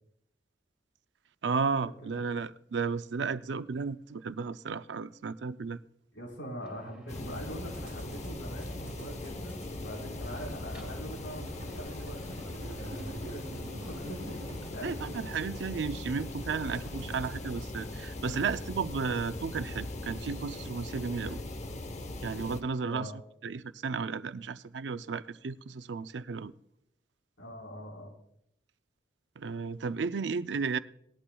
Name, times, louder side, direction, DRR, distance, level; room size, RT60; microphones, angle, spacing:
voice 1, 1.4-5.8 14.8-21.4 22.2-26.5 29.4-30.8, right 5 dB, 80° right, 0.5 m, -34 dB
voice 2, 6.1-14.9 22.8-23.2 27.4-28.1, equal, 90° left, 4.4 m, -43 dB
sound 1, 6.6-17.7, equal, 5° right, 2.3 m, -55 dB
sound 2, 7.1-22.6, left 2 dB, 35° left, 0.8 m, -40 dB
sound 3, 10.1-15.4, right 2 dB, 60° right, 0.8 m, -48 dB
19.0 x 11.5 x 2.3 m
head